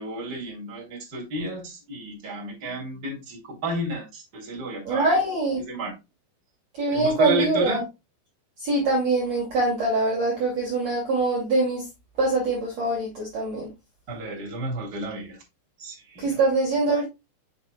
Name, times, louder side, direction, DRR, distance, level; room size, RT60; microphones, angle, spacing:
voice 1, 0.0-5.1 5.6-5.9 6.9-7.8 14.1-15.4 15.8-16.4, right 1 dB, 25° right, 3.2 m, -32 dB
voice 2, 4.8-5.6 6.8-7.8 8.6-11.8 12.2-13.7 16.2-17.0, right 2 dB, 45° right, 3.2 m, -23 dB
7.4 x 7.1 x 2.3 m
omnidirectional pair, 5.0 m